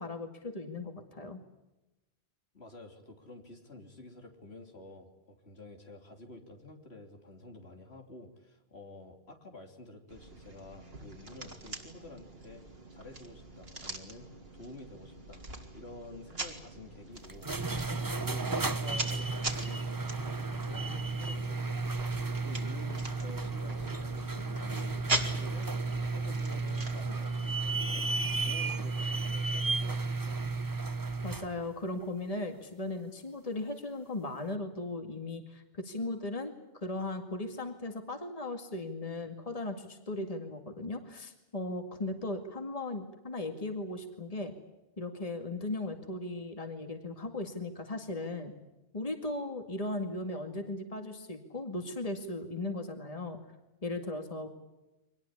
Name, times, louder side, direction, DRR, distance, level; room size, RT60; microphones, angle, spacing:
voice 1, 0.0-1.4 31.2-44.5 45.0-48.5 48.9-53.4 53.8-54.5, left 2 dB, 35° left, 6 dB, 2.2 m, -37 dB
voice 2, 2.5-12.6 12.9-15.4 15.7-25.7 26.0-28.1 28.4-30.4, left 2 dB, 75° left, 4 dB, 3.4 m, -50 dB
sound 1, 10.1-28.6, right 2 dB, 65° right, 2.9 m, -42 dB
sound 2, 17.3-31.5, right 3 dB, 20° right, 0.9 m, -33 dB
24.5 x 19.5 x 9.9 m, 0.99 s
omnidirectional pair, 1.1 m